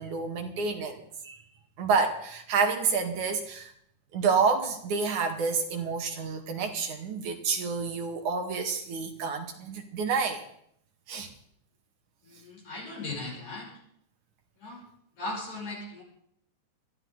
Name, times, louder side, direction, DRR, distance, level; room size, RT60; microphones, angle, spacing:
voice 1, 0.0-1.4 1.8-3.7 4.1-10.4 11.1-11.3, right 5 dB, 85° right, 4 dB, 3.6 m, -29 dB
voice 2, 12.3-13.7 14.6-14.8 15.2-16.0, left 2 dB, 75° left, -2 dB, 7.8 m, -37 dB
21.5 x 14.5 x 4.1 m, 0.68 s
omnidirectional pair, 3.4 m